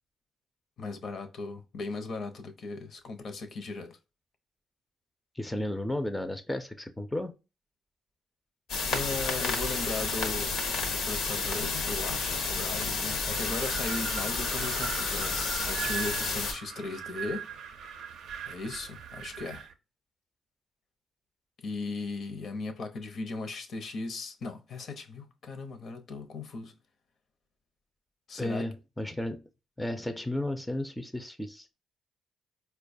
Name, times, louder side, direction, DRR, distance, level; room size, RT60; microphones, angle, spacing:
voice 1, 0.8-4.0 8.9-10.5 10.9-17.5 18.5-19.7 21.6-26.7 28.3-28.7, left 3 dB, 60° left, 0.7 m, -37 dB
voice 2, 5.4-7.3 28.4-29.4 29.8-31.7, left 1 dB, 5° left, 0.4 m, -33 dB
sound 1, 8.7-16.5, left 4 dB, 80° left, 1.0 m, -31 dB
Wind, 13.3-19.7, right 7 dB, 80° right, 0.4 m, -39 dB
4.4 x 2.2 x 2.5 m
cardioid pair, 90°, 0 cm